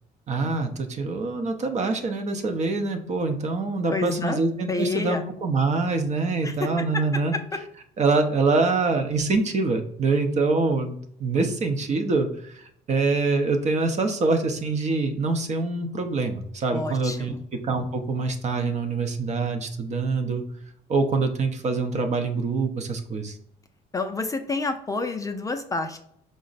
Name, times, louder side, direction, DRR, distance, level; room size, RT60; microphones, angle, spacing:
voice 1, 0.3-7.3 8.0-20.4 20.9-23.4, right 3 dB, 45° right, 6 dB, 0.7 m, -25 dB
voice 2, 3.9-4.4 4.7-5.2 6.4-7.0 7.3-7.4 16.7-17.4 23.9-26.0, left 3 dB, 20° left, 6 dB, 0.4 m, -29 dB
4.9 x 2.1 x 3.9 m, 0.69 s
cardioid pair, 110°, 17 cm